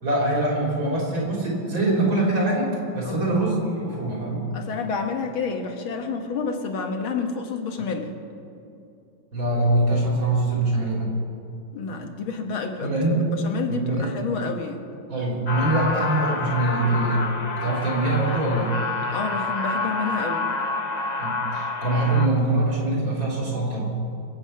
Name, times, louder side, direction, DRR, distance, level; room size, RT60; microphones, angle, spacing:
voice 1, 0.0-4.5 9.3-11.1 12.8-13.3 13.7-14.1 15.1-17.2 17.6-18.8 21.2-23.9, right 2 dB, 75° right, -3 dB, 4.3 m, -23 dB
voice 2, 4.5-8.1 11.7-14.8 19.1-20.4, left 4 dB, 90° left, 4 dB, 2.2 m, -29 dB
sound 1, 15.5-22.3, left 3 dB, 35° left, 0.7 m, -28 dB
24.5 x 8.4 x 5.6 m, 2.6 s
omnidirectional pair, 2.2 m